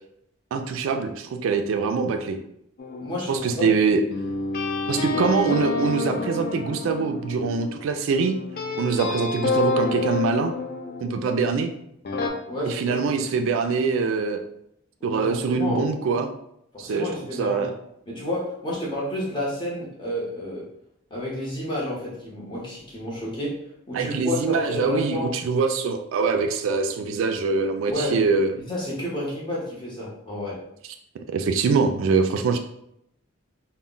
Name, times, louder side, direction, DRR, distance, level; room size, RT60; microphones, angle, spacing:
voice 1, 0.5-2.4 3.3-4.0 4.9-8.4 8.8-10.5 11.0-11.7 12.6-14.4 15.0-16.3 16.8-17.1 17.4-17.7 23.9-28.5 31.3-32.6, right 4 dB, 75° right, 6 dB, 0.3 m, -23 dB
sound 1, 2.8-11.6 12.0-12.3, left 3 dB, 45° left, 0.3 m, -29 dB
voice 2, 3.0-3.7 4.9-5.2 12.5-13.0 15.0-15.8 16.7-17.7 18.1-20.7 21.1-23.6 23.9-25.3 27.9-28.2 28.7-30.6, left 1 dB, 25° left, -5 dB, 0.7 m, -30 dB
2.1 x 2.1 x 3.7 m, 0.75 s
head